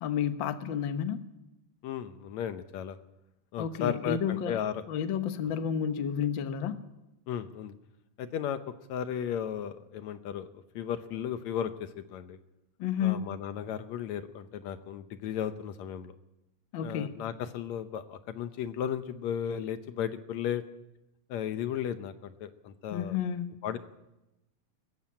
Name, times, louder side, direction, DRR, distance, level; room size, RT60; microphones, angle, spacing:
voice 1, 0.0-1.2 3.6-4.6 4.9-6.8 12.8-13.2 16.7-17.2 22.9-23.5, left 8 dB, 55° left, 9 dB, 1.5 m, -31 dB
voice 2, 1.8-3.0 3.5-4.8 7.3-7.7 8.2-8.6 8.9-12.4 13.0-16.1 16.8-20.6 21.3-23.2 23.6-23.8, left 9 dB, 75° left, 10 dB, 2.1 m, -35 dB
21.0 x 15.0 x 8.7 m, 0.94 s
omnidirectional pair, 3.3 m